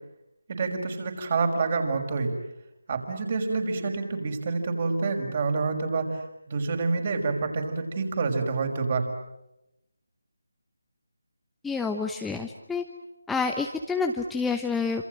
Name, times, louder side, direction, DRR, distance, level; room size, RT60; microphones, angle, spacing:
voice 1, 0.5-2.3 2.9-6.2 6.5-9.1, right 4 dB, 40° right, 4 dB, 5.8 m, -27 dB
voice 2, 11.6-12.8 13.3-15.0, left 4 dB, 5° left, 3 dB, 1.0 m, -28 dB
27.0 x 27.0 x 7.8 m, 0.89 s
figure-of-eight pair, 160°, 0 cm